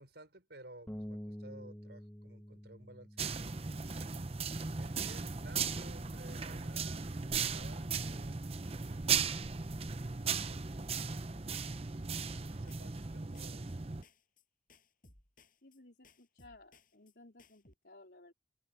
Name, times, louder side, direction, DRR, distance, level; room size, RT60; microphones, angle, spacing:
voice 1, 0.0-3.5 4.8-9.5 10.3-11.0 11.8-12.0 12.3-13.8, right 1 dB, 70° right, 5.5 m, -56 dB
Bass guitar, 0.9-7.1, equal, 10° left, 1.9 m, -50 dB
sound 1, 3.2-14.0, right 5 dB, 35° right, 0.7 m, -37 dB
sound 2, 12.3-13.1 13.3-14.4 14.7-17.1 17.4-17.7, left 2 dB, 50° left, 7.9 m, -63 dB
voice 2, 15.6-18.3, left 2 dB, 70° left, 4.4 m, -58 dB
open air
head